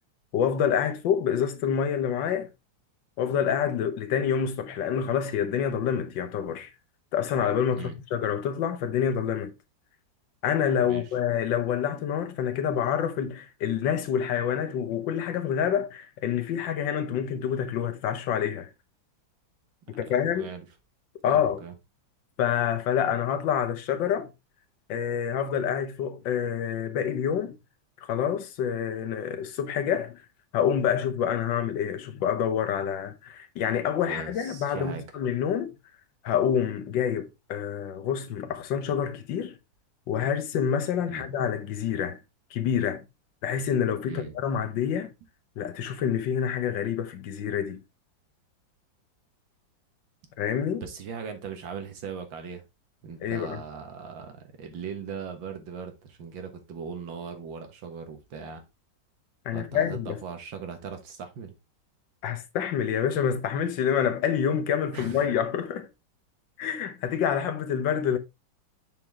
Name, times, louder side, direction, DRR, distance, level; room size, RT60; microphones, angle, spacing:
voice 1, 0.3-2.5 3.2-6.7 7.1-9.5 10.4-18.7 20.0-20.5 21.2-21.6 22.4-24.3 24.9-27.5 28.0-30.2 30.5-35.7 36.2-39.5 40.1-42.2 42.5-43.0 43.4-45.1 45.6-47.8 50.4-50.8 53.2-53.6 59.4-60.2 62.2-65.9 66.6-68.2, left 8 dB, 75° left, 1.6 m, -27 dB
voice 2, 19.9-20.7 21.2-21.7 34.1-35.0 41.1-41.3 44.1-44.3 50.7-52.6 53.0-58.6 59.5-61.5 64.9-65.3, right 6 dB, 80° right, 2.1 m, -39 dB
7.6 x 4.6 x 3.4 m
omnidirectional pair, 2.1 m